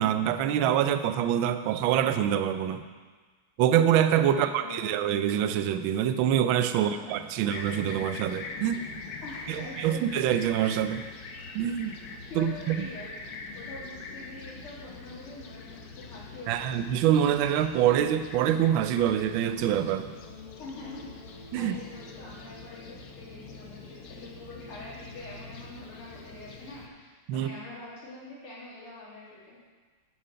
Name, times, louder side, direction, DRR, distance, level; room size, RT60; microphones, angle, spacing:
voice 1, 0.0-2.8 3.6-8.8 9.5-11.0 11.5-12.0 12.4-12.9 16.5-20.1 21.5-21.7 27.3-27.5, right 10 dB, 75° right, 10 dB, 1.3 m, -25 dB
voice 2, 4.3-4.9 6.7-7.5 9.2-10.1 12.2-16.8 20.6-29.6, left 2 dB, 75° left, -7 dB, 3.7 m, -45 dB
Fixed-wing aircraft airplane, 7.5-26.9, left 4 dB, 60° left, 1.2 m, -43 dB
8.9 x 7.7 x 5.7 m, 1.4 s
omnidirectional pair, 2.4 m